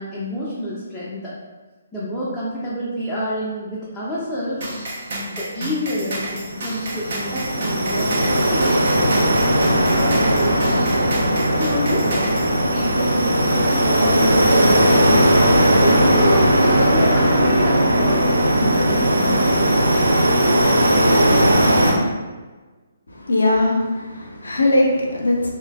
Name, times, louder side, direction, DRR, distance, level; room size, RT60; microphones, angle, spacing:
voice 1, 0.0-1.4 1.9-4.7 5.3-9.1 9.7-11.0 11.5-15.0 15.8-19.8, equal, 5° left, -11 dB, 0.5 m, -28 dB
sound 1, 4.6-12.5, right 1 dB, 45° right, 0.7 m, -30 dB
sound 2, 6.3-21.9, right 1 dB, 85° right, 0.4 m, -17 dB
voice 2, 23.1-25.5, left 2 dB, 70° left, 0 dB, 0.5 m, -20 dB
3.1 x 2.1 x 2.3 m, 1.3 s
figure-of-eight pair, 135°, 0 cm